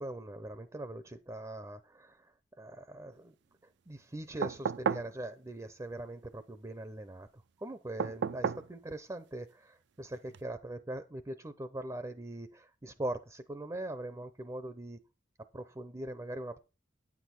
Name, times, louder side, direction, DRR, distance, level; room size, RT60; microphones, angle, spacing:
voice 1, 0.0-2.2 2.6-3.3 3.9-7.3 7.6-15.0 15.5-16.6, right 1 dB, 20° right, 11 dB, 0.6 m, -41 dB
sound 1, 4.4-5.1 8.0-8.7 10.3-10.4, right 7 dB, 65° right, 0.4 m, -32 dB
9.8 x 8.3 x 4.3 m, 0.30 s
head